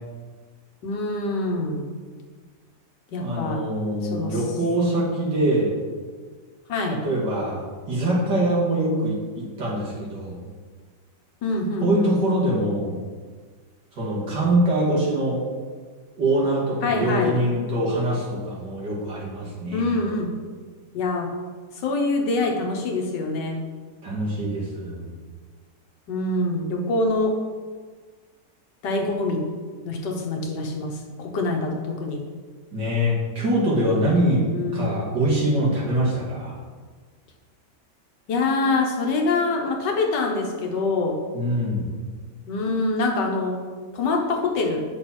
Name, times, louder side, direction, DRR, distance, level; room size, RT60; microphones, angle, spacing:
voice 1, 0.8-1.9 3.1-3.6 4.0-4.4 6.7-7.0 11.4-12.1 16.8-17.4 19.7-20.3 20.9-21.3 21.8-23.6 26.1-27.4 28.8-29.5 29.8-32.2 34.5-34.9 38.3-41.2 42.5-43.6 43.9-44.8, left 3 dB, 80° left, 1 dB, 1.7 m, -25 dB
voice 2, 3.2-5.7 7.0-10.5 11.8-13.0 14.0-15.4 16.2-20.0 24.0-25.1 32.7-34.4 34.7-36.6 41.3-41.9, right 1 dB, 75° right, -6 dB, 2.8 m, -23 dB
8.0 x 5.7 x 4.3 m, 1.5 s
omnidirectional pair, 1.9 m